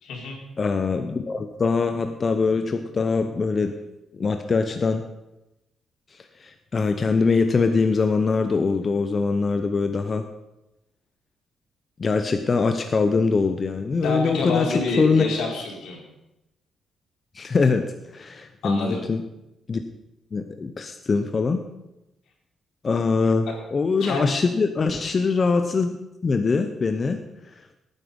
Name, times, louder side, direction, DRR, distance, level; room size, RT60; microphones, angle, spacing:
voice 1, 0.0-0.4 14.0-16.0 18.6-19.0 24.0-24.3, left 3 dB, 80° left, -1 dB, 4.2 m, -27 dB
voice 2, 0.6-3.7 4.1-5.1 6.4-10.3 12.0-15.2 17.3-19.2 19.7-19.8 20.3-21.6 22.8-26.0 26.2-27.2, left 4 dB, 30° left, 7 dB, 0.8 m, -23 dB
18.0 x 9.6 x 5.4 m, 0.93 s
cardioid pair, 160°, 0 cm